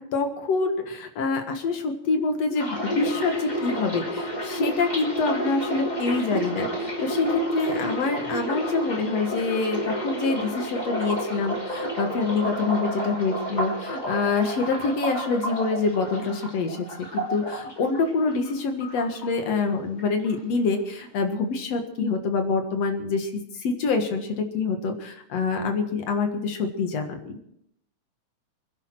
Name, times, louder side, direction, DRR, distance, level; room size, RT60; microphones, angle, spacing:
voice 1, 0.0-27.4, left 4 dB, 65° left, 5 dB, 2.7 m, -26 dB
sound 1, 2.6-18.5 18.8-19.7 20.0-20.3, right 1 dB, 15° left, 2.5 m, -30 dB
25.0 x 11.0 x 4.7 m, 0.73 s
omnidirectional pair, 3.4 m